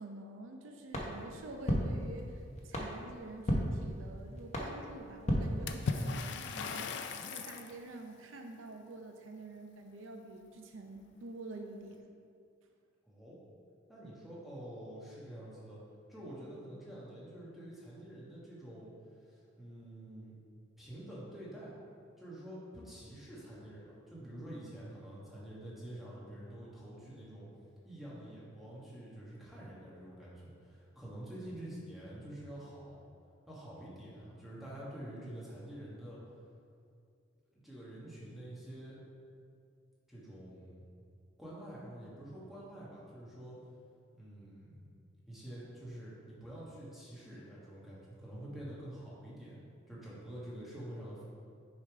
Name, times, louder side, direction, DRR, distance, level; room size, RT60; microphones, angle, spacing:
voice 1, 0.0-6.9 7.3-12.0, right 2 dB, 75° right, 4 dB, 0.6 m, -47 dB
sound 1, 0.9-6.2, equal, 35° left, 0.7 m, -36 dB
Water / Splash splatter, 5.7-7.7, left 4 dB, 60° left, 0.3 m, -37 dB
voice 2, 13.0-13.4 13.9-15.8 16.1-18.9 19.2-20.4 20.8-21.7 22.2-27.5 27.8-33.0 33.5-36.2 37.5-39.0 40.1-40.8 41.4-43.6 44.1-44.8 45.3-49.6 49.9-51.2, right 1 dB, ahead, -8 dB, 1.3 m, -47 dB
6.4 x 3.6 x 4.7 m, 2.3 s
head